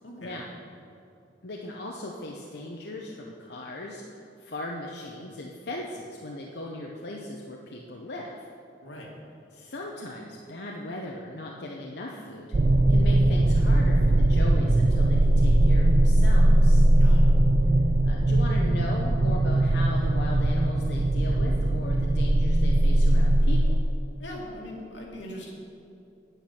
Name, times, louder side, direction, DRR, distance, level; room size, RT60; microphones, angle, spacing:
voice 1, 0.0-0.5 8.8-9.1 17.0-17.3 24.2-25.5, left 1 dB, 85° left, -2 dB, 2.1 m, -40 dB
voice 2, 1.4-8.5 9.5-12.5 12.9-16.8 18.0-23.8, left 1 dB, 60° left, -1 dB, 0.8 m, -38 dB
sound 1, 12.5-23.8, right 1 dB, 35° right, 0.4 m, -20 dB
9.0 x 8.1 x 5.8 m, 2.6 s
head